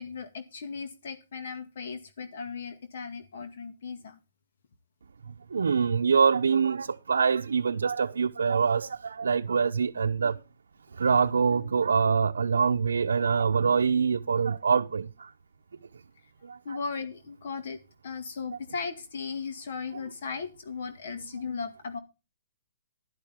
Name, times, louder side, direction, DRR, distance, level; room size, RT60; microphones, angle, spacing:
voice 1, 0.0-4.2 16.7-17.8 18.0-22.0, left 5 dB, 55° left, 2.1 m, -37 dB
voice 2, 5.5-10.4 11.0-15.3 16.4-16.8 18.5-18.6 21.2-21.3, right 5 dB, 90° right, 0.7 m, -25 dB
12.0 x 11.0 x 3.6 m
hypercardioid pair, 160°, 0 cm